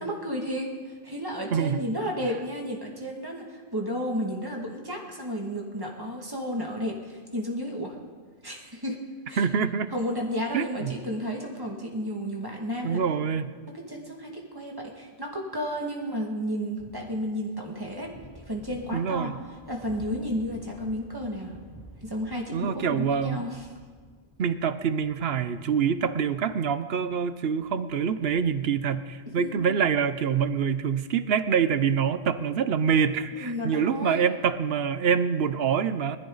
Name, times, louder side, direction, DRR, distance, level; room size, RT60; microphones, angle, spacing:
voice 1, 0.0-8.0 8.4-9.0 9.3-9.5 9.9-13.0 13.7-18.1 18.5-19.3 19.7-21.6 22.0-23.7 29.4-29.7 33.3-34.2, equal, 20° right, -1 dB, 2.3 m, -32 dB
voice 2, 1.5-1.8 9.4-9.9 10.5-11.0 12.8-13.5 18.9-19.3 22.5-23.4 24.4-36.2, right 7 dB, 75° right, 13 dB, 1.0 m, -25 dB
sound 1, 16.7-32.5, right 1 dB, 20° left, 2.0 m, -52 dB
20.5 x 14.0 x 4.0 m, 1.5 s
omnidirectional pair, 1.1 m